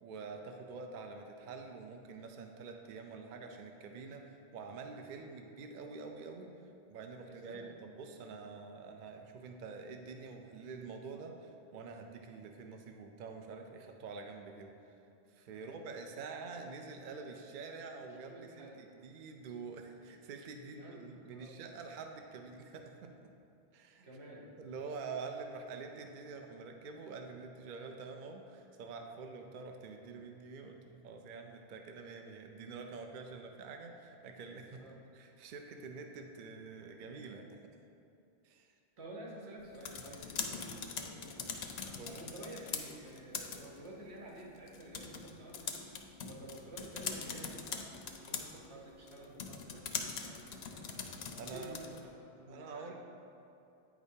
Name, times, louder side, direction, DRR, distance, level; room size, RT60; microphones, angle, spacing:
voice 1, 0.0-6.5 6.9-14.7 15.3-23.1 23.7-24.1 24.6-34.8 35.1-37.5 38.4-38.7 41.9-42.3 51.3-51.8 52.5-52.9, right 4 dB, 60° right, 4 dB, 0.6 m, -47 dB
voice 2, 7.2-7.8 15.5-15.8 17.8-18.8 20.7-21.0 21.3-21.8 24.0-24.5 34.8-35.0 39.0-41.5 42.0-51.0 51.5-52.9, right 1 dB, 85° right, -3 dB, 1.3 m, -51 dB
sound 1, 39.6-52.1, left 6 dB, 75° left, 0.8 m, -43 dB
8.7 x 5.0 x 2.7 m, 2.7 s
omnidirectional pair, 1.1 m